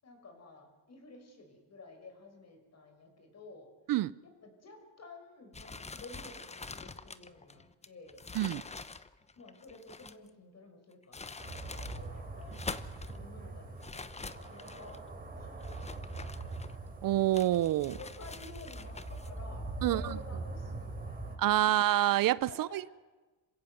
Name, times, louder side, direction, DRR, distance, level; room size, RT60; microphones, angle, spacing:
voice 1, 0.0-3.7 4.2-8.2 9.4-11.4 11.7-12.6 13.1-15.0 15.4-16.6 18.0-21.8 22.5-22.9, left 3 dB, 40° left, 5.9 m, -52 dB
sound 1, 5.5-10.3 10.9-12.0 12.4-13.2 13.8-15.0 15.6-16.9 17.3-19.3, left 4 dB, 15° left, 1.0 m, -45 dB
sound 2, 11.4-21.4, right 2 dB, 20° right, 4.5 m, -42 dB
voice 2, 17.0-18.0 19.8-20.0 21.4-22.8, right 13 dB, 60° right, 0.7 m, -27 dB
27.0 x 16.0 x 7.9 m
cardioid pair, 100°, 39 cm